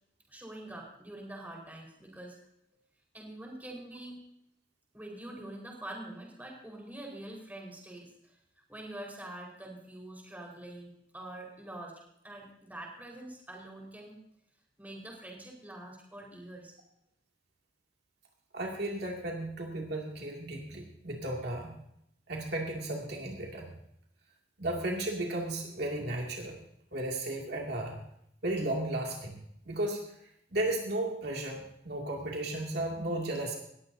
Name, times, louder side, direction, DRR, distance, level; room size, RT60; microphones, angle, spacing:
voice 1, 0.3-2.4 3.1-4.2 4.9-8.4 8.7-14.2 14.8-16.8, right 1 dB, 10° right, -1 dB, 4.8 m, -45 dB
voice 2, 18.5-21.7 22.3-23.7 24.6-26.6 26.9-28.0 28.4-29.4 29.7-30.0 30.5-33.5, right 1 dB, 60° right, -1 dB, 2.5 m, -34 dB
20.0 x 15.5 x 2.8 m, 0.73 s
head